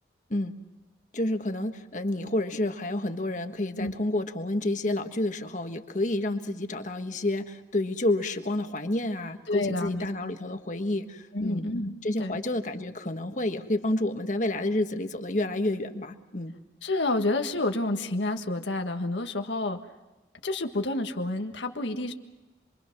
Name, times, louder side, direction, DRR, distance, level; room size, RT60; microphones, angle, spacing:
voice 1, 1.1-11.7 12.0-16.5, left 1 dB, 45° left, 7 dB, 1.5 m, -29 dB
voice 2, 9.5-10.1 11.3-12.4 16.8-19.8 20.4-22.1, left 2 dB, 85° left, 5 dB, 1.6 m, -29 dB
27.5 x 23.5 x 6.1 m, 1.1 s
head